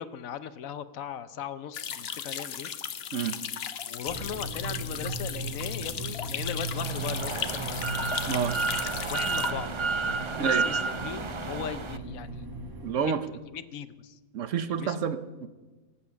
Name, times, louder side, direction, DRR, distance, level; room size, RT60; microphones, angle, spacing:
voice 1, 0.0-2.7 3.9-7.9 9.1-9.7 10.3-12.5 13.0-13.1 13.5-14.2 14.7-15.0, left 9 dB, 75° left, 13 dB, 1.1 m, -38 dB
sound 1, 1.7-9.5, left 8 dB, 55° left, 0.9 m, -36 dB
sound 2, 4.1-12.9, right 2 dB, 15° right, 1.1 m, -38 dB
sound 3, 6.7-12.0, right 4 dB, 50° right, 0.3 m, -31 dB
voice 2, 8.3-8.6 10.4-10.7 12.8-13.2 14.3-15.5, right 7 dB, 65° right, 11 dB, 1.1 m, -29 dB
18.0 x 8.6 x 7.0 m, 1.2 s
omnidirectional pair, 1.5 m